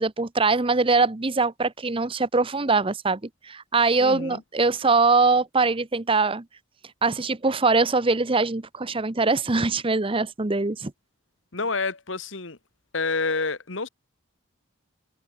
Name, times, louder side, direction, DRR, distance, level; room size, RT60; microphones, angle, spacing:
voice 1, 0.0-6.4 7.0-10.9, right 3 dB, 25° right, 0.8 m, -22 dB
voice 2, 4.0-4.4 11.5-12.6 12.9-13.9, left 4 dB, 65° left, 1.9 m, -28 dB
head